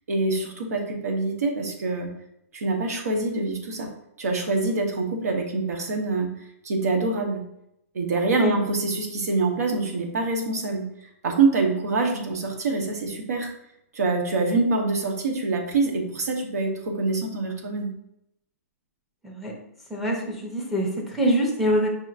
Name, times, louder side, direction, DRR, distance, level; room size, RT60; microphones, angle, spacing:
voice 1, 0.1-2.1 2.5-3.9 4.2-6.3 6.6-7.4 7.9-10.8 11.2-13.5 13.9-17.9, right 3 dB, 80° right, 3 dB, 1.0 m, -25 dB
voice 2, 19.9-21.9, equal, ahead, -2 dB, 0.5 m, -24 dB
5.7 x 2.9 x 2.4 m, 0.79 s
hypercardioid pair, 165°, 8 cm